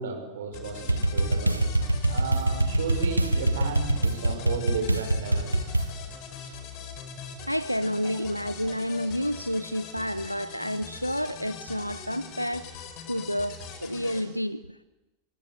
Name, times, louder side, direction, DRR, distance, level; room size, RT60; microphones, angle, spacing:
voice 1, 0.0-1.7 2.1-5.6 8.0-8.1, right 5 dB, 60° right, 5.2 m, -34 dB
sound 1, 0.5-14.2, left 6 dB, 40° left, 5.0 m, -42 dB
sound 2, 0.9-5.9, right 2 dB, 85° right, 1.2 m, -24 dB
voice 2, 7.4-14.8, equal, 90° left, 0.8 m, -30 dB
26.0 x 23.5 x 8.2 m
figure-of-eight pair, 90°, 0 cm